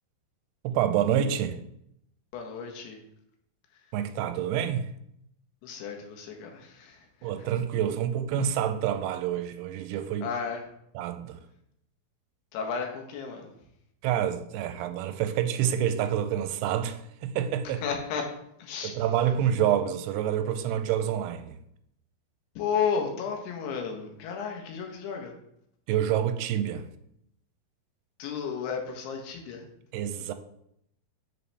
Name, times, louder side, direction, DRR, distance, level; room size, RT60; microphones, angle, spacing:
voice 1, 0.6-1.6 3.9-4.9 7.2-10.3 11.0-11.4 14.0-17.8 18.8-21.6 25.9-26.8 29.9-30.3, right 10 dB, 90° right, 2.6 m, -27 dB
voice 2, 2.3-3.0 5.6-7.5 10.2-10.6 12.5-13.5 17.8-18.3 18.6-19.1 22.6-25.3 28.2-29.7, left 6 dB, 90° left, 3.1 m, -33 dB
9.9 x 4.2 x 3.3 m
omnidirectional pair, 4.5 m